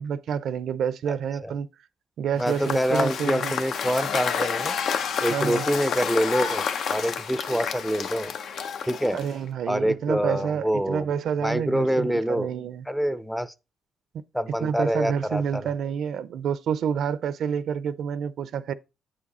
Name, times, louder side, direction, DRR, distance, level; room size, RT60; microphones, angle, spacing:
voice 1, 0.0-1.7 2.2-3.5 5.3-5.7 9.1-12.8 14.6-18.7, right 7 dB, 70° right, 0.5 m, -28 dB
Cheering / Applause / Crowd, 2.4-9.5, left 7 dB, 70° left, 0.8 m, -29 dB
voice 2, 2.4-4.7 5.2-8.3 8.9-9.2 9.7-11.1 11.4-12.5 12.9-13.5 14.3-15.7, equal, ahead, 0.5 m, -26 dB
8.6 x 4.9 x 4.2 m
cardioid pair, 90°, 0 cm